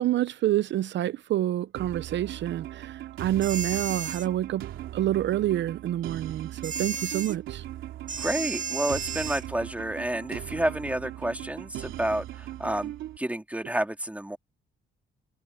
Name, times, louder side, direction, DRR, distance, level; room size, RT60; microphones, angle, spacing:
voice 1, 0.0-4.7 4.9-7.6, right 13 dB, 65° right, 0.6 m, -27 dB
sound 1, 1.7-13.2, right 13 dB, 85° right, 2.6 m, -39 dB
sound 2, 3.4-4.3 6.6-7.4 8.1-9.5, right 6 dB, 40° right, 2.0 m, -33 dB
voice 2, 8.2-14.4, right 1 dB, 5° right, 2.9 m, -30 dB
cardioid pair, 90°, 20 cm